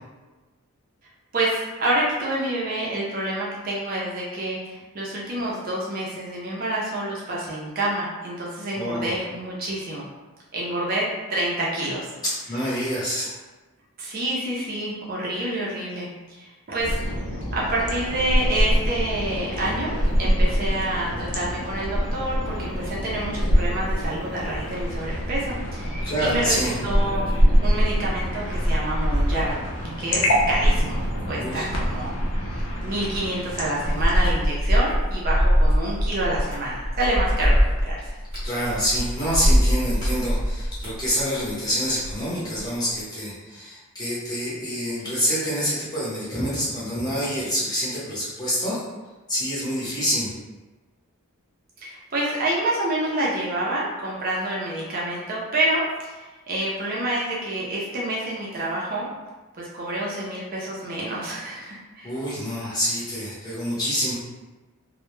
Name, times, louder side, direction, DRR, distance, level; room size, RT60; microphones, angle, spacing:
voice 1, 1.3-10.1 10.5-12.1 14.0-17.2 17.5-26.6 26.8-27.3 27.6-29.6 30.0-32.1 32.8-38.0 51.8-59.1 59.6-62.1, right 1 dB, 40° right, -5 dB, 0.4 m, -28 dB
voice 2, 8.7-9.1 12.5-13.4 26.0-26.8 31.4-31.7 38.4-48.8 49.3-50.3 62.0-64.1, equal, 20° left, -9 dB, 0.7 m, -26 dB
sound 1, 16.8-34.3, equal, 85° left, 0.5 m, -24 dB
sound 2, 25.5-42.2 42.6-43.0, equal, 25° right, 0.8 m, -25 dB
2.1 x 2.0 x 3.0 m, 1.2 s
head